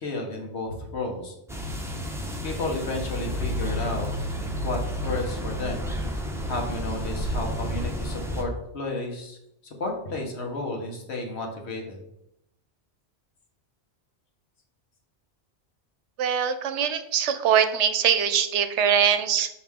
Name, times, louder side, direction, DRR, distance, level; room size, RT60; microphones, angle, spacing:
voice 1, 0.0-1.3 2.4-5.9 6.5-9.4 9.6-12.0, left 2 dB, 65° left, 1 dB, 1.4 m, -32 dB
sound 1, 1.5-8.4, equal, 5° right, 0.5 m, -31 dB
voice 2, 16.2-19.5, right 8 dB, 80° right, 10 dB, 0.9 m, -22 dB
5.8 x 4.7 x 3.6 m, 0.83 s
omnidirectional pair, 1.2 m